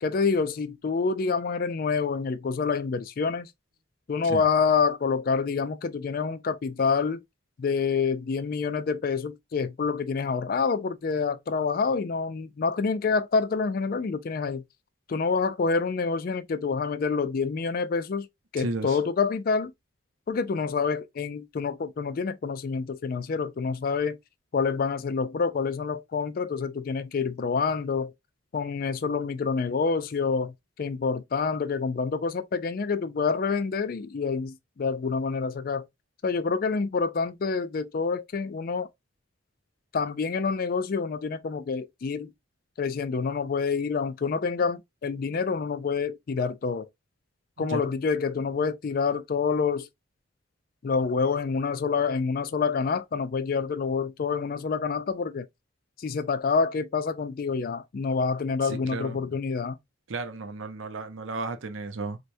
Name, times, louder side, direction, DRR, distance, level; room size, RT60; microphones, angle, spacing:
voice 1, 0.0-3.5 4.1-7.2 7.6-14.6 15.1-18.3 18.5-19.7 20.3-24.2 24.5-28.1 28.5-30.5 30.8-35.8 36.2-38.9 39.9-42.3 42.8-46.9 47.6-49.9 50.8-55.5 56.0-59.8, left 5 dB, 45° left, 0.3 m, -27 dB
voice 2, 18.6-19.0 47.6-47.8 58.6-59.2 60.1-62.2, right 3 dB, 75° right, 0.6 m, -34 dB
4.5 x 2.2 x 2.6 m
head